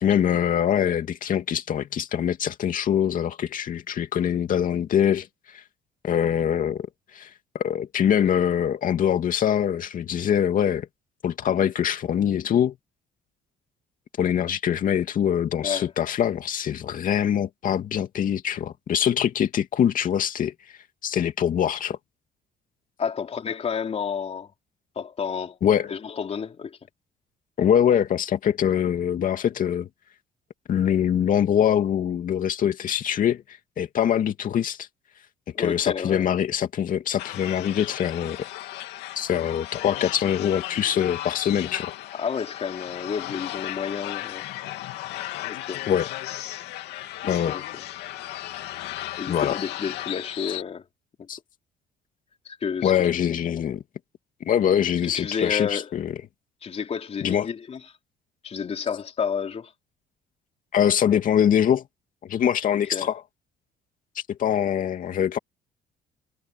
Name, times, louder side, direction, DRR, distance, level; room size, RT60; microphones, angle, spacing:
voice 1, 0.0-5.6 6.0-6.9 7.1-10.9 11.2-12.7 14.2-20.5 21.0-22.0 25.6-25.9 27.6-29.9 30.7-33.4 33.8-34.9 35.6-38.4 39.2-41.9 45.9-46.1 47.3-47.6 49.3-49.5 51.3-51.4 52.8-53.8 54.4-56.1 57.2-57.5 60.7-61.8 62.2-63.2 64.3-65.4, left 9 dB, 55° left, 2.5 m, -23 dB
voice 2, 15.6-15.9 23.0-24.5 24.9-25.6 25.9-26.8 35.5-36.3 42.1-44.5 45.6-45.8 47.2-47.6 49.1-50.9 51.2-51.3 52.4-53.1 53.5-53.7 55.0-55.9 56.6-57.8 58.4-59.7 62.7-63.1, left 6 dB, 40° left, 3.1 m, -30 dB
sound 1, 37.2-50.6, left 15 dB, 85° left, 2.6 m, -35 dB
cardioid pair, 110°, 17 cm